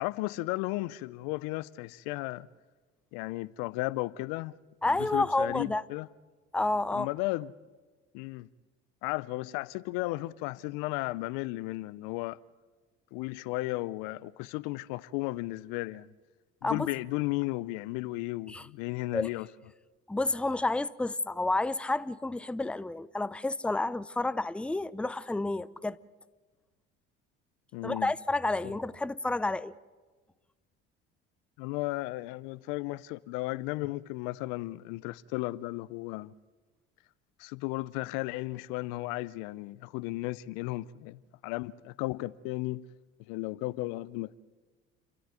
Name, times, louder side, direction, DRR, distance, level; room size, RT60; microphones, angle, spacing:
voice 1, 0.0-2.5 3.1-4.5 5.0-6.1 6.9-7.5 8.1-8.5 9.0-12.4 13.1-16.1 16.6-19.5 27.7-28.1 28.6-28.8 31.6-36.3 37.4-42.8 43.3-44.4, left 20 dB, 70° left, 0.7 m, -34 dB
voice 2, 4.8-5.8 6.5-7.1 16.6-16.9 18.5-18.7 19.1-19.3 20.1-26.0 27.8-29.7, left 2 dB, 5° left, 0.6 m, -30 dB
29.0 x 13.0 x 9.5 m
hypercardioid pair, 65°, 33 cm